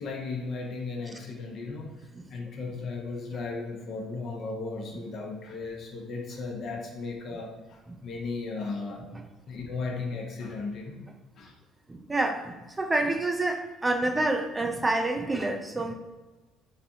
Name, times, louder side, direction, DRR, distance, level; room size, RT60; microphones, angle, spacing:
voice 1, 0.0-9.0 9.5-11.0 11.4-11.5, left 3 dB, 60° left, 0 dB, 0.7 m, -36 dB
voice 2, 11.9-15.9, right 2 dB, 20° right, 5 dB, 0.4 m, -28 dB
4.0 x 2.2 x 2.8 m, 1.2 s
hypercardioid pair, 65°, 0 cm